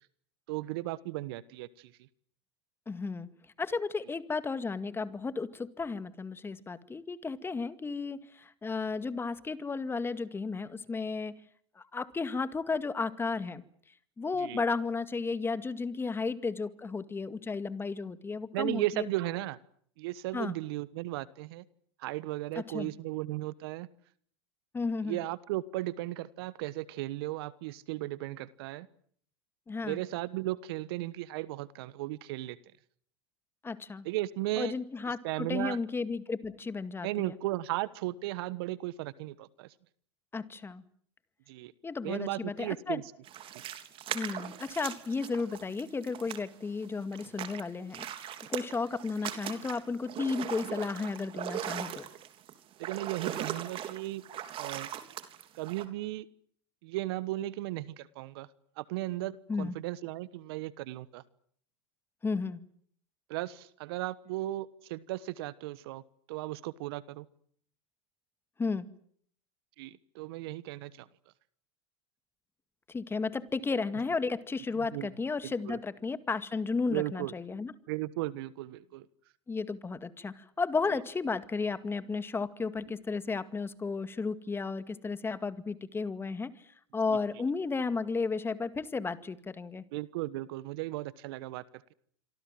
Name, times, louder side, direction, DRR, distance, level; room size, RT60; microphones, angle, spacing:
voice 1, 0.5-1.9 14.4-14.6 18.5-19.6 20.0-21.6 22.0-23.9 25.0-28.9 29.8-32.6 34.0-34.7 35.2-35.8 37.0-39.7 41.5-41.7 42.0-43.0 52.8-54.2 54.6-54.9 55.5-56.3 56.8-58.5 58.8-61.2 63.3-66.0 66.3-67.2 69.8-71.1 74.8-75.1 75.4-75.8 76.9-77.3 77.9-79.1 87.1-87.2 89.9-91.6, right 17 dB, 65° right, 18 dB, 1.3 m, -36 dB
voice 2, 2.9-3.3 3.6-11.3 11.8-13.6 14.2-19.1 20.3-20.5 22.6-22.9 24.7-25.2 29.7-30.0 33.6-34.1 34.6-37.4 40.3-40.8 41.8-43.0 44.1-52.1 59.5-59.7 62.2-62.6 68.6-68.8 72.9-77.7 79.5-86.5 86.9-89.8, left 4 dB, 15° left, 13 dB, 2.1 m, -33 dB
sound 1, 43.2-46.9 47.1-55.8, right 11 dB, 40° right, 3.5 m, -39 dB
27.0 x 24.0 x 7.7 m, 0.63 s
hypercardioid pair, 95°, 14 cm